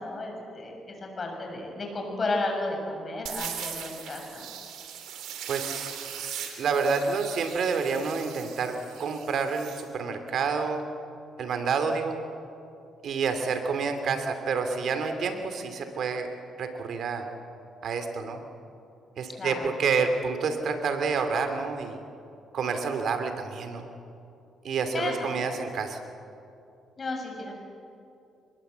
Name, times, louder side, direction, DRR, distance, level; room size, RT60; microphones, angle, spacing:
voice 1, 0.0-4.5 19.4-19.7 24.9-25.1 27.0-27.5, left 2 dB, 35° left, 1 dB, 7.3 m, -33 dB
sound 1, 3.3-9.8, right 9 dB, 85° right, 3.1 m, -39 dB
voice 2, 5.5-10.9 11.4-12.2 13.0-16.3 16.6-17.3 17.8-18.4 19.2-22.0 22.5-23.9 24.6-26.0, right 5 dB, 65° right, 7 dB, 2.8 m, -29 dB
25.5 x 21.5 x 8.2 m, 2.7 s
cardioid pair, 90°, 0 cm